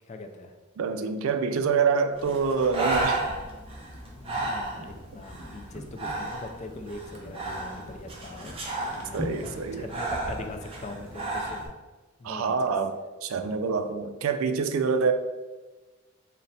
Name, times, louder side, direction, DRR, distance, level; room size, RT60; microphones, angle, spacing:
voice 1, 0.1-0.6 4.2-8.6 8.9-11.7 12.2-12.8, left 2 dB, 35° left, 6 dB, 0.3 m, -41 dB
voice 2, 0.8-3.2 9.1-9.9 12.2-12.9 13.2-15.1, right 5 dB, 80° right, 8 dB, 0.4 m, -26 dB
Breathing, 2.2-11.7, right 2 dB, 25° right, 0.6 m, -33 dB
3.9 x 2.1 x 4.1 m, 1.2 s
head